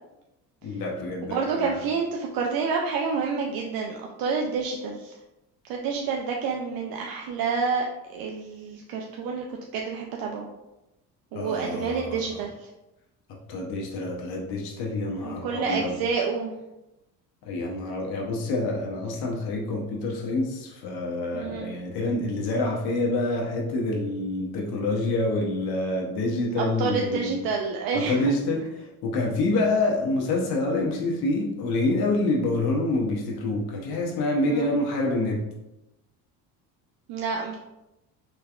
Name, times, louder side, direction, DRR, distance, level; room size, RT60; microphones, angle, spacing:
voice 1, 0.6-1.8 11.3-12.2 13.5-15.9 17.4-27.4 27.9-35.4, left 2 dB, 75° left, -1 dB, 0.8 m, -27 dB
voice 2, 1.3-5.1 5.6-7.8 8.1-10.5 11.3-12.7 15.2-16.6 21.3-21.7 26.6-28.3 34.4-34.7 37.1-37.6, right 5 dB, 70° right, 0 dB, 0.5 m, -29 dB
3.3 x 3.3 x 2.4 m, 0.93 s
cardioid pair, 120°, 37 cm